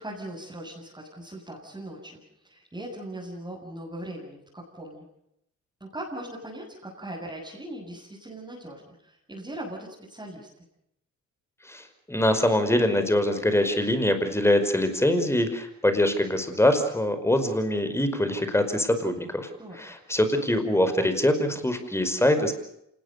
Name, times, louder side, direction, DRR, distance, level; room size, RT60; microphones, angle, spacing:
voice 1, 0.0-5.1 5.8-10.5 19.6-19.8, right 1 dB, 15° right, -4 dB, 7.9 m, -39 dB
voice 2, 11.7-19.5 19.8-22.5, left 1 dB, 10° left, 9 dB, 5.2 m, -24 dB
27.0 x 20.0 x 6.8 m, 0.77 s
cardioid pair, 90°, 30 cm